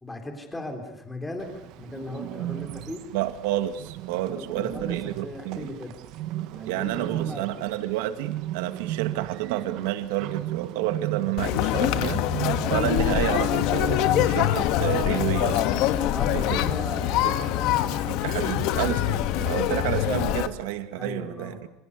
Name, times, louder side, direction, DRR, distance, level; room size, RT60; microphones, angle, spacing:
voice 1, 0.0-1.5 1.8-3.0 4.2-5.0 5.2-6.0 6.5-7.7 16.1-18.2 20.9-21.6, left 1 dB, 5° left, 4 dB, 3.8 m, -37 dB
Bird, 1.4-13.5, right 15 dB, 45° right, 1.2 m, -35 dB
voice 2, 3.1-5.7 6.7-12.3 12.7-15.9 16.3-16.6 17.2-17.3 18.1-21.7, right 13 dB, 90° right, 9 dB, 2.2 m, -30 dB
Conversation, 11.4-20.5, left 12 dB, 50° left, 1.5 m, -24 dB
28.5 x 27.5 x 6.8 m, 0.81 s
cardioid pair, 180°, 0 cm